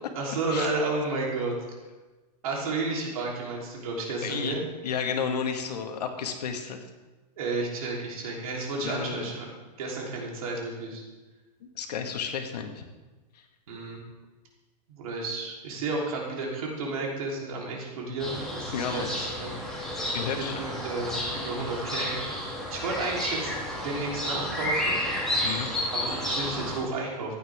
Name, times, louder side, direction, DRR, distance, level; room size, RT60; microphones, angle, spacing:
voice 1, 0.1-1.6 2.4-4.6 7.4-11.0 13.7-14.0 14.9-19.6 20.4-22.2 22.7-23.5 23.8-25.0 25.9-27.3, right 3 dB, 60° right, -2 dB, 3.5 m, -32 dB
voice 2, 4.2-4.5 4.8-6.8 8.8-9.3 11.6-12.8 18.7-19.1 20.1-20.6 25.4-25.7, left 6 dB, 75° left, 4 dB, 1.7 m, -32 dB
sound 1, 18.2-26.8, left 1 dB, ahead, 2.3 m, -31 dB
15.5 x 9.2 x 3.6 m, 1.2 s
supercardioid pair, 175°, 21 cm